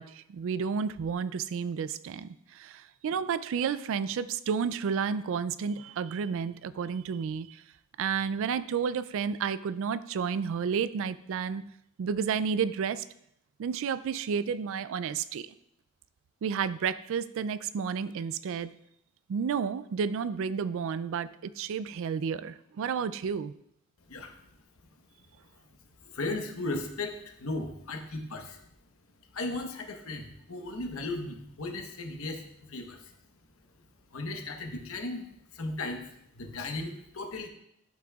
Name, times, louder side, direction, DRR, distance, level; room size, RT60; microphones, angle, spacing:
voice 1, 0.0-7.6 8.0-11.6 12.0-13.0 13.6-15.5 16.4-18.7 19.3-23.5, right 6 dB, 65° right, 15 dB, 0.3 m, -31 dB
voice 2, 26.0-28.6 29.3-33.1 34.1-35.2 35.5-36.1 36.3-37.5, left 2 dB, 70° left, 4 dB, 1.1 m, -36 dB
11.5 x 6.1 x 2.3 m, 0.75 s
head